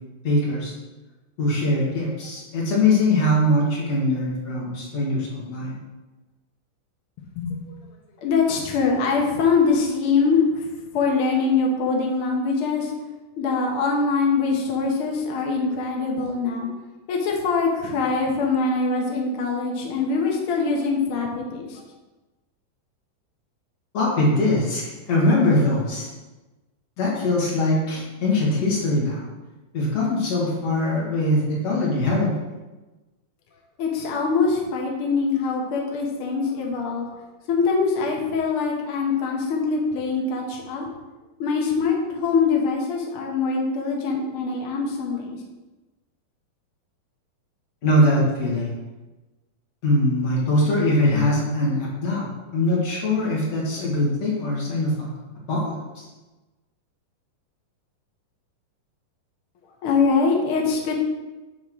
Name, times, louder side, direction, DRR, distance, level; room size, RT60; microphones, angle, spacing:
voice 1, 0.2-0.7 1.4-5.8 23.9-24.8 25.1-26.1 27.0-29.2 29.7-32.3 47.8-48.7 49.8-55.1 55.5-56.1, left 1 dB, 45° left, -5 dB, 2.7 m, -22 dB
voice 2, 7.4-7.7 8.2-10.6 10.9-12.9 13.4-16.7 17.1-21.8 33.8-37.1 37.5-40.9 41.4-45.4 59.8-60.9, left 4 dB, 90° left, 0 dB, 1.2 m, -23 dB
8.7 x 3.7 x 6.2 m, 1.1 s
omnidirectional pair, 4.3 m